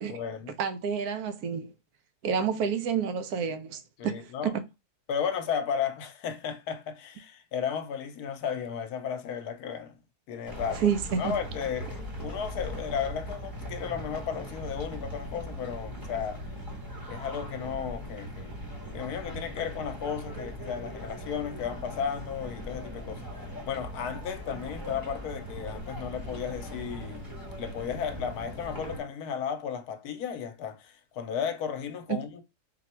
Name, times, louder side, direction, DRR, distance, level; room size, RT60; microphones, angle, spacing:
voice 1, 0.1-0.6 4.0-4.5 5.1-10.0 10.3-10.8 11.2-16.5 17.1-18.6 18.9-23.3 23.7-27.2 27.6-32.4, left 7 dB, 75° left, 1.1 m, -34 dB
voice 2, 0.6-1.7 2.2-4.5 10.8-11.4 32.1-32.2, right 7 dB, 75° right, 1.1 m, -29 dB
sound 1, 10.5-29.0, equal, 15° right, 1.0 m, -40 dB
4.2 x 2.3 x 4.3 m
omnidirectional pair, 1.7 m